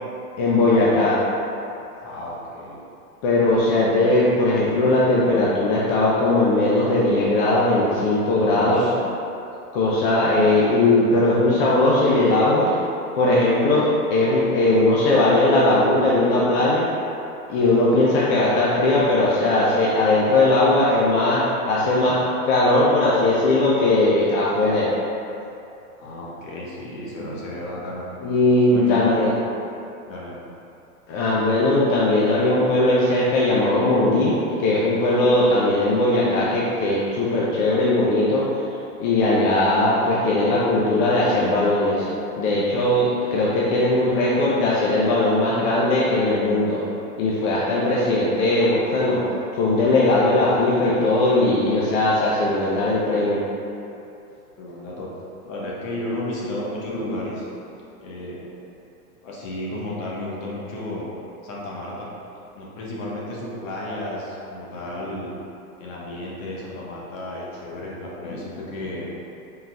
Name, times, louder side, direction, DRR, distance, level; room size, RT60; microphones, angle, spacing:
voice 1, 0.4-1.2 3.2-8.8 9.7-12.7 13.1-16.9 17.5-22.2 22.4-24.9 28.2-29.3 31.1-34.3 34.6-38.4 39.0-42.1 42.4-46.8 47.2-49.2 49.5-53.4, left 2 dB, 40° left, -6 dB, 0.6 m, -19 dB
voice 2, 2.0-2.8 8.3-9.0 26.0-28.0 28.7-29.3 30.1-30.5 54.6-55.1 55.4-57.5 58.0-58.5 59.2-61.1 61.4-62.1 62.5-65.3 65.8-69.0, left 1 dB, 55° left, -5 dB, 1.1 m, -32 dB
3.9 x 3.7 x 2.2 m, 2.7 s
hypercardioid pair, 125°, 45 cm